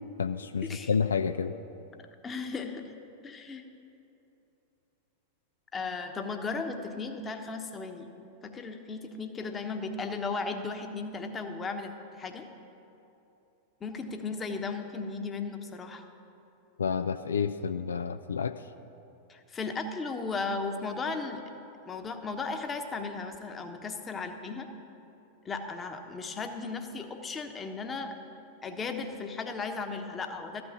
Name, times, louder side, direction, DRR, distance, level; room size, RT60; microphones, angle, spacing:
voice 1, 0.2-1.6 16.8-18.6, left 6 dB, 80° left, 10 dB, 0.3 m, -29 dB
voice 2, 2.2-2.8 3.2-3.6 5.7-8.1 8.4-12.5 13.8-16.0 19.3-21.4 21.8-24.7 25.4-28.1 28.6-30.6, left 4 dB, 20° left, 6 dB, 1.1 m, -36 dB
13.5 x 6.1 x 8.7 m, 2.9 s
figure-of-eight pair, 90°, 0 cm